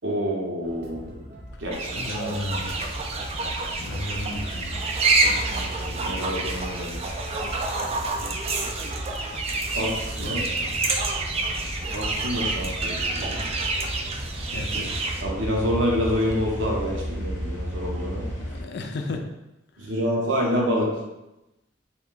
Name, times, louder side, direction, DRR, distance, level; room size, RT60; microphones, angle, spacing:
voice 1, 0.0-1.2 1.6-2.3 5.2-7.0 9.7-10.4 11.5-13.5 15.2-18.3 19.8-20.9, equal, 85° right, -2 dB, 0.9 m, -28 dB
sound 1, 0.6-14.4, equal, 55° right, 0.8 m, -43 dB
sound 2, 1.7-15.2, right 3 dB, 35° right, 0.3 m, -28 dB
voice 2, 2.0-2.8 3.8-4.8 5.5-5.6 10.2-11.0 14.5-15.0 18.4-19.3 19.8-19.9, left 2 dB, 60° left, 4 dB, 0.4 m, -34 dB
sound 3, 2.5-18.6, equal, 15° left, 0.8 m, -35 dB
3.3 x 2.3 x 3.8 m, 0.97 s
head